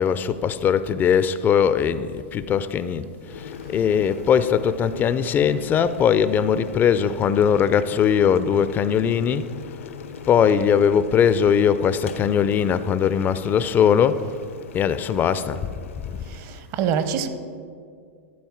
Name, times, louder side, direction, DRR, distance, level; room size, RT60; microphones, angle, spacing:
voice 1, 0.0-9.5 10.3-14.3 14.7-15.7, left 7 dB, 25° left, 0.4 m, -20 dB
Boiling, 3.2-16.7, left 6 dB, 75° left, 0.6 m, -39 dB
voice 2, 16.3-17.3, right 8 dB, 45° right, 0.8 m, -25 dB
12.5 x 4.3 x 7.2 m
hypercardioid pair, 105°, 7 cm